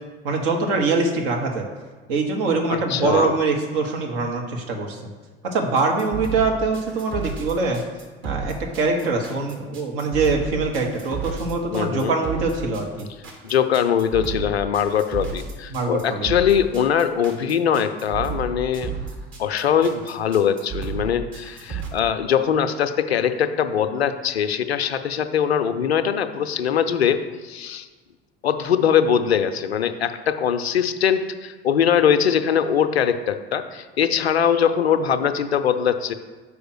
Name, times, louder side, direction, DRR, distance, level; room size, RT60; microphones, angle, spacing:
voice 1, 0.2-1.6 2.1-5.0 5.5-7.8 8.2-13.1 15.7-16.3, right 3 dB, 65° right, 2 dB, 1.3 m, -23 dB
voice 2, 2.7-3.4 11.7-12.1 13.4-18.9 19.4-27.9 28.4-36.1, left 8 dB, 80° left, 10 dB, 0.5 m, -22 dB
sound 1, 5.8-21.9, right 6 dB, 40° right, 1.5 m, -33 dB
5.5 x 4.8 x 6.2 m, 1.4 s
figure-of-eight pair, 65°, 31 cm